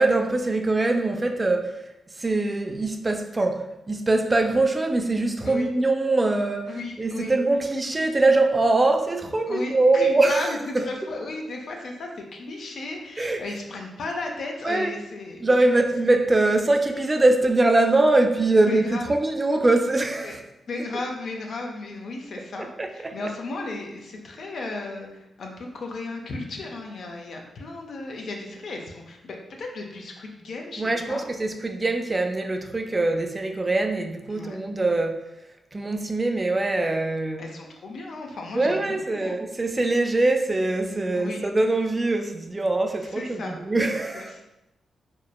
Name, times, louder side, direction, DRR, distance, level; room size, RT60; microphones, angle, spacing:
voice 1, 0.0-1.7 2.2-10.5 10.7-10.8 13.2-13.4 14.6-14.9 15.4-20.4 22.8-23.2 30.8-35.2 35.7-37.4 38.5-44.4, right 2 dB, 30° right, 5 dB, 0.3 m, -23 dB
voice 2, 6.7-7.3 9.5-15.4 18.6-19.1 20.2-20.4 20.7-31.3 34.3-34.6 37.4-39.4 41.1-41.4 43.0-43.6 44.1-44.4, left 2 dB, 70° left, 1 dB, 0.4 m, -35 dB
2.9 x 2.1 x 2.3 m, 0.92 s
supercardioid pair, 50°, 0 cm